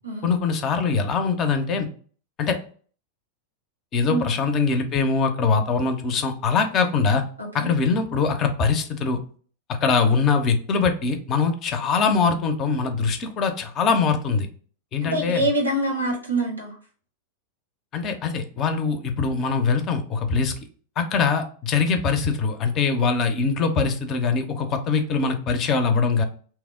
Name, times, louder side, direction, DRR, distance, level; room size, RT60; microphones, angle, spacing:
voice 1, 0.2-1.9 2.4-2.6 3.9-7.2 7.5-9.2 9.8-14.5 14.9-15.4 17.9-20.6 21.0-26.2, left 5 dB, 30° left, 7 dB, 0.5 m, -22 dB
voice 2, 7.4-7.7 15.0-16.8, right 1 dB, 85° right, -1 dB, 1.1 m, -25 dB
2.9 x 2.0 x 3.4 m, 0.43 s
figure-of-eight pair, 90°, 0 cm